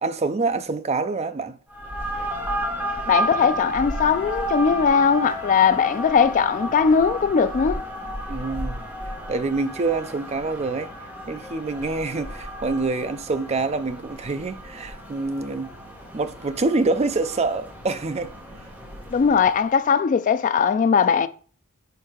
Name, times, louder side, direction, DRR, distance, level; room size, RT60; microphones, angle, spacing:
voice 1, 0.0-1.6 8.3-8.8 9.3-10.9 11.3-15.7 16.1-18.3, right 3 dB, 30° right, 0.4 m, -26 dB
sound 1, 1.7-19.6, right 1 dB, 5° right, 1.2 m, -33 dB
voice 2, 3.1-7.8 19.1-21.3, left 6 dB, 35° left, 0.3 m, -19 dB
4.6 x 4.5 x 4.9 m
head